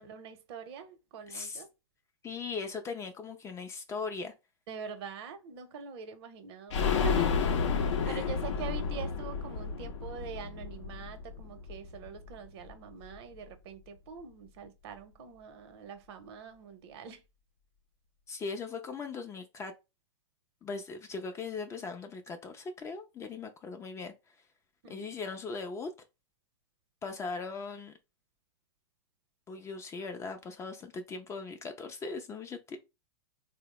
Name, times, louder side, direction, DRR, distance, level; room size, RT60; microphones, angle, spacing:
voice 1, 0.0-1.7 4.7-7.3 7.7-17.2 24.8-25.1, right 6 dB, 55° right, 0.7 m, -44 dB
voice 2, 1.3-1.6 2.2-4.3 8.0-8.2 18.3-19.7 20.6-24.1 24.9-25.9 27.0-27.9 29.5-32.8, left 4 dB, 15° left, 0.4 m, -39 dB
sound 1, 6.7-12.3 12.6-12.7 13.0-13.1, left 5 dB, 65° left, 0.6 m, -31 dB
3.2 x 2.0 x 3.0 m
hypercardioid pair, 110°, 16 cm